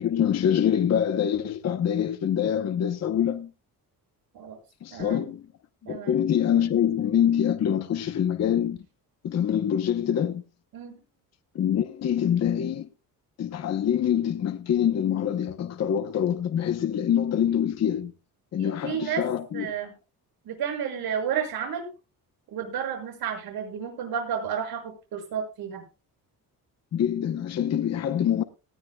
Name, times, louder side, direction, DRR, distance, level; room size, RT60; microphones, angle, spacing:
voice 1, 0.0-3.5 4.8-5.5 5.9-8.8 9.2-10.4 11.5-12.9 13.4-18.1 18.5-19.7 26.9-28.4, left 9 dB, 45° left, 0.9 m, -25 dB
voice 2, 4.9-5.3 5.8-6.2 10.7-11.0 18.6-19.2 19.5-19.9 20.4-21.9 22.5-25.8, right 8 dB, 75° right, 6.7 m, -31 dB
19.5 x 14.0 x 2.3 m
cardioid pair, 160°, 36 cm